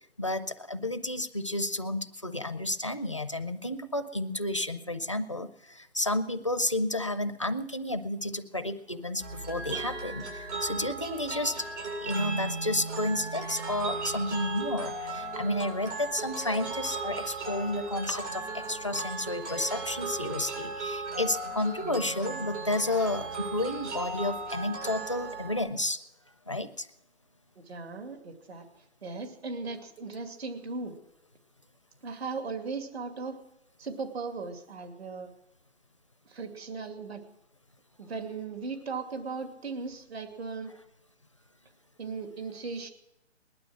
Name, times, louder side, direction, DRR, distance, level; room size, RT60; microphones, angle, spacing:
voice 1, 0.2-11.7 12.0-26.0 26.5-26.9, left 1 dB, 30° left, 11 dB, 0.5 m, -31 dB
sound 1, 9.2-25.6, right 3 dB, 80° right, 8.0 m, -36 dB
voice 2, 27.6-31.0 32.0-33.4 33.8-35.3 36.2-37.2 38.0-40.7 42.0-42.9, right 4 dB, 60° right, 5 dB, 2.5 m, -37 dB
19.5 x 12.0 x 6.2 m, 0.89 s
hypercardioid pair, 175°, 35 cm